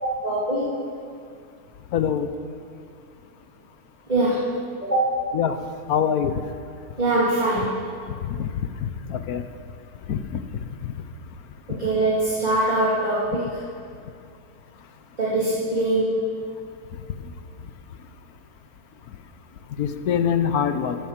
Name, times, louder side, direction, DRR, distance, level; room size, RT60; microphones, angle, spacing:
voice 1, 0.0-0.7 4.1-4.5 4.8-5.2 7.0-7.8 11.7-13.6 15.2-16.3, right 2 dB, 25° right, -8 dB, 2.6 m, -23 dB
voice 2, 1.9-2.3 5.3-5.6 5.9-6.3 8.3-9.4 10.1-10.4 19.8-21.0, left 8 dB, 65° left, 10 dB, 1.2 m, -24 dB
13.0 x 13.0 x 7.4 m, 2.3 s
omnidirectional pair, 1.8 m